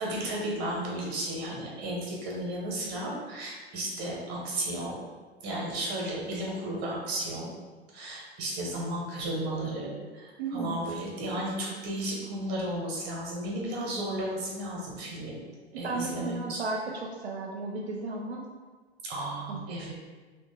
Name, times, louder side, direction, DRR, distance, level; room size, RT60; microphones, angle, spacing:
voice 1, 0.0-5.0 5.4-7.5 7.9-15.4 15.7-16.6 19.0-19.9, right 1 dB, 30° right, -3 dB, 0.8 m, -34 dB
voice 2, 10.4-10.9 15.7-18.5 19.5-19.6, right 3 dB, 75° right, -1 dB, 0.5 m, -34 dB
2.8 x 2.1 x 2.9 m, 1.4 s
figure-of-eight pair, 100°, 33 cm